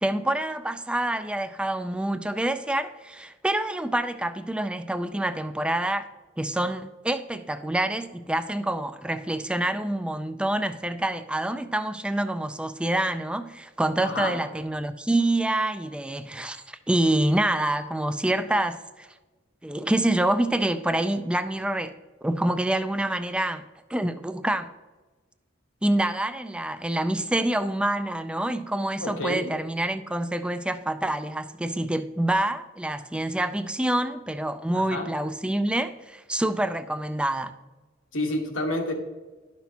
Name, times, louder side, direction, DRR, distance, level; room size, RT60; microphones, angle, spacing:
voice 1, 0.0-6.1 6.4-19.1 19.6-22.0 22.2-24.7 25.8-37.5, right 1 dB, 5° right, 0.3 m, -27 dB
voice 2, 14.0-14.4 29.0-29.5 34.7-35.1 38.1-38.9, left 1 dB, 80° left, 1.3 m, -29 dB
11.5 x 6.0 x 2.8 m
head